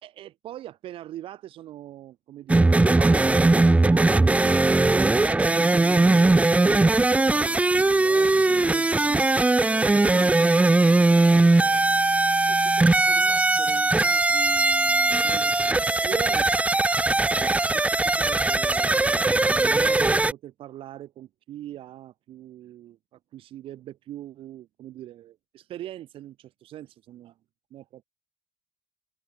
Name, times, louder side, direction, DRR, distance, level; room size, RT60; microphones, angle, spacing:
voice 1, 0.0-9.2 9.8-12.0 12.4-16.5 17.3-27.3 27.7-28.0, right 13 dB, 70° right, 5.1 m, -42 dB
sound 1, 2.5-20.3, right 2 dB, 15° right, 0.8 m, -20 dB
supercardioid pair, 85°, 10 cm